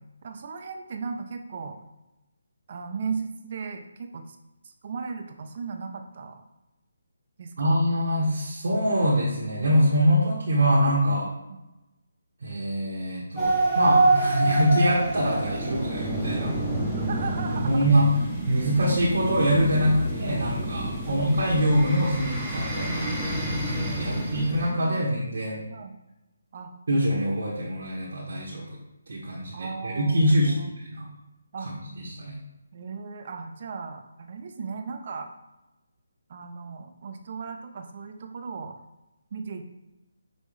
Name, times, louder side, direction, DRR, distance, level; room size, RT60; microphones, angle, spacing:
voice 1, 0.0-1.8 2.7-4.4 4.6-6.4 7.4-7.7 11.5-11.6 17.1-17.9 21.1-21.2 24.0-25.0 25.7-26.0 26.5-26.7 29.5-30.7 31.0-31.1 31.5-31.7 32.7-35.3 36.3-38.8 39.3-39.6, right 5 dB, 40° right, 6 dB, 0.6 m, -36 dB
voice 2, 7.6-11.3 12.4-16.5 17.5-18.1 18.5-23.4 23.7-25.6 26.9-28.8 29.1-31.1 32.0-32.4, equal, 70° right, -6 dB, 1.2 m, -24 dB
sound 1, 13.4-24.7, right 2 dB, ahead, 0.9 m, -27 dB
5.4 x 3.0 x 3.2 m, 0.96 s
hypercardioid pair, 165°, 0 cm